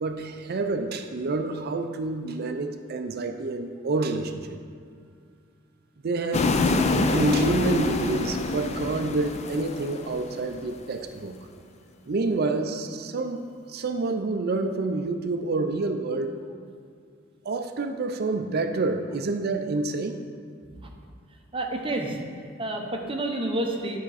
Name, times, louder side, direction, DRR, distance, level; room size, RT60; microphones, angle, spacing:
voice 1, 0.0-4.6 6.0-6.6 7.1-11.5 12.1-16.4 17.4-20.2, right 3 dB, 50° right, 6 dB, 0.5 m, -28 dB
sound 1, 6.3-10.6, left 3 dB, 35° left, 0.4 m, -26 dB
voice 2, 21.5-22.2 22.6-24.0, right 1 dB, 25° right, 1 dB, 0.9 m, -29 dB
10.5 x 5.7 x 4.1 m, 2.2 s
head